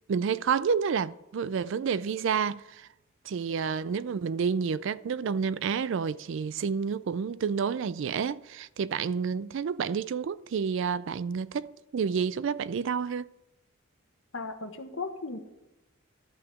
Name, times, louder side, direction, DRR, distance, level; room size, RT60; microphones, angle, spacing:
voice 1, 0.1-2.9 3.2-13.3, right 6 dB, 60° right, 0.3 m, -29 dB
voice 2, 14.3-15.4, left 3 dB, 65° left, 1.2 m, -36 dB
11.5 x 5.7 x 8.3 m
head